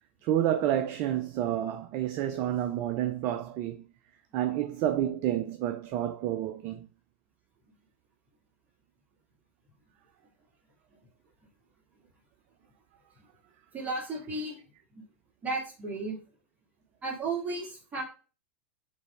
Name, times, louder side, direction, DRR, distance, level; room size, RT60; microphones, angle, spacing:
voice 1, 0.2-3.8 4.3-6.9, right 11 dB, 40° right, 0.4 m, -29 dB
voice 2, 13.7-14.6 14.9-15.0 15.4-16.2 17.0-18.0, right 3 dB, 20° right, 2.0 m, -34 dB
4.0 x 3.3 x 3.2 m
figure-of-eight pair, 90°, 7 cm